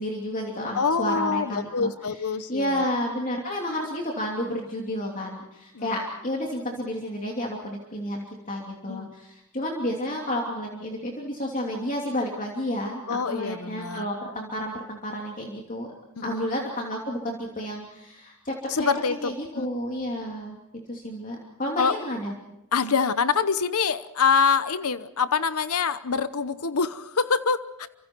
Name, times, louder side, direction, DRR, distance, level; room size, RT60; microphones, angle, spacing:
voice 1, 0.0-1.9 2.5-15.9 16.2-20.6 20.9-22.3, equal, 35° left, -1 dB, 2.9 m, -31 dB
voice 2, 0.7-2.9 5.7-5.9 8.9-9.1 13.1-14.1 16.2-16.4 18.7-19.7 21.8-21.9 22.7-27.9, left 5 dB, 80° left, 13 dB, 0.9 m, -25 dB
29.5 x 25.5 x 4.6 m, 0.86 s
head